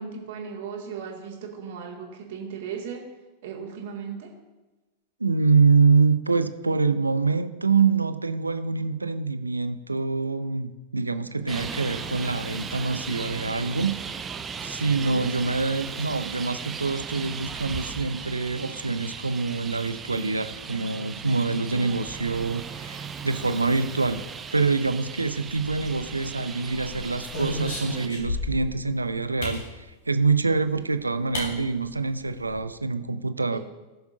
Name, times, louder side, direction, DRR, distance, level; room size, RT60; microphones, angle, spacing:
voice 1, 0.0-3.0 3.4-4.3 15.0-15.3 21.7-22.1 30.7-30.9 33.5-33.6, right 6 dB, 55° right, -1 dB, 2.2 m, -37 dB
voice 2, 5.2-13.9 14.6-24.2 24.5-33.6, right 4 dB, 80° right, 12 dB, 0.5 m, -25 dB
Traffic noise roadway noise, 11.5-28.1, right 6 dB, 20° right, 0.6 m, -37 dB
sound 1, 25.5-26.2 26.7-28.7 29.4-29.7 30.8-30.9 31.3-31.5 31.8-31.9 32.2-32.6, left 1 dB, 55° left, 3.3 m, -33 dB
18.5 x 7.0 x 2.7 m, 1.1 s
figure-of-eight pair, 90°, 0 cm